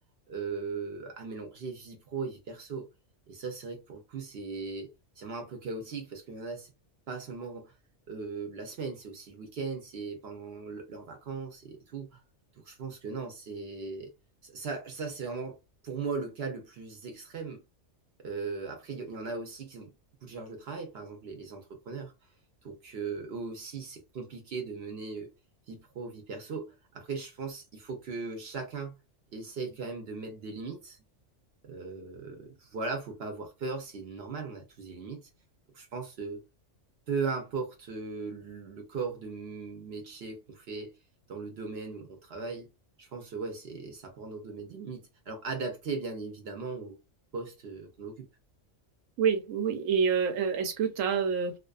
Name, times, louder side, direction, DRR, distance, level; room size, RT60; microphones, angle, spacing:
voice 1, 0.3-2.9 3.3-4.9 5.2-6.7 7.1-7.7 8.1-12.1 12.7-14.1 14.4-15.6 15.8-17.6 18.2-19.9 20.2-22.1 22.6-25.3 25.7-29.0 29.3-31.0 31.6-35.3 35.7-36.4 37.1-40.9 41.3-42.7 43.0-47.0 47.3-48.3, right 4 dB, 60° right, 0.8 m, -38 dB
voice 2, 49.2-51.6, right 6 dB, 85° right, 1.0 m, -27 dB
2.4 x 2.2 x 2.3 m
omnidirectional pair, 1.3 m